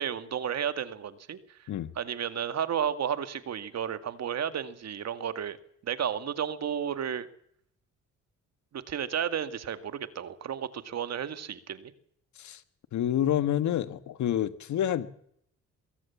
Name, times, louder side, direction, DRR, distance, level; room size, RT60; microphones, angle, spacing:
voice 1, 0.0-1.4 2.0-5.6 5.8-7.3 8.7-11.9, right 8 dB, 60° right, 2.1 m, -32 dB
voice 2, 12.9-15.1, left 11 dB, 70° left, 1.6 m, -28 dB
23.0 x 16.0 x 7.2 m
cardioid pair, 90°, 30 cm